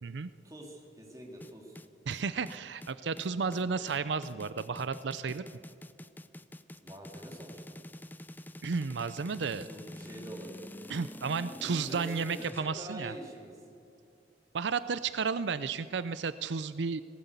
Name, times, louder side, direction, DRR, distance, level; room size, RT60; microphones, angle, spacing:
voice 1, 0.4-1.8 3.6-3.8 6.8-7.8 9.4-10.9 11.5-13.5, right 1 dB, 20° right, 0 dB, 3.0 m, -46 dB
sound 1, 1.4-12.7, left 1 dB, 10° left, 0.5 m, -46 dB
voice 2, 2.1-5.5 8.6-9.7 10.9-13.1 14.5-17.0, right 5 dB, 85° right, 14 dB, 0.5 m, -33 dB
18.0 x 17.0 x 8.2 m, 2.5 s
head